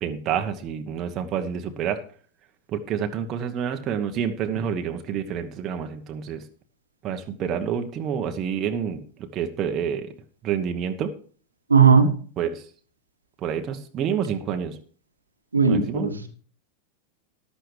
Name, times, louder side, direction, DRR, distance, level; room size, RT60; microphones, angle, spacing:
voice 1, 0.0-2.0 2.7-6.4 7.0-10.1 10.4-11.1 12.4-12.7 13.4-14.8 15.7-16.1, right 8 dB, 30° right, 5 dB, 1.1 m, -28 dB
voice 2, 11.7-12.1 15.5-16.3, right 5 dB, 75° right, 6 dB, 1.5 m, -17 dB
13.5 x 11.5 x 3.3 m, 0.43 s
figure-of-eight pair, 90°, 0 cm